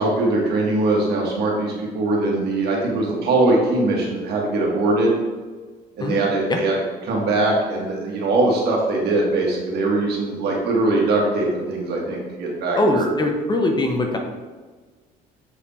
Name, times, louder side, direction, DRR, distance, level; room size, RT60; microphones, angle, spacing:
voice 1, 0.0-5.1 6.0-6.7 7.0-13.1, right 2 dB, 75° right, -2 dB, 1.7 m, -21 dB
voice 2, 12.8-14.2, left 1 dB, 25° left, 3 dB, 0.8 m, -21 dB
7.2 x 3.4 x 4.2 m, 1.4 s
cardioid pair, 110°, 17 cm